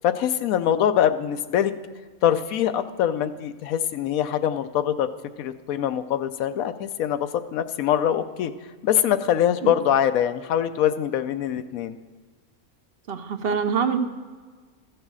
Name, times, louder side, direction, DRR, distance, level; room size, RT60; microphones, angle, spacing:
voice 1, 0.0-1.7 2.2-5.1 5.4-8.5 8.8-12.0, left 10 dB, 80° left, 11 dB, 1.0 m, -23 dB
voice 2, 13.1-14.0, right 6 dB, 50° right, 9 dB, 0.8 m, -25 dB
14.0 x 6.4 x 6.1 m, 1.5 s
omnidirectional pair, 1.5 m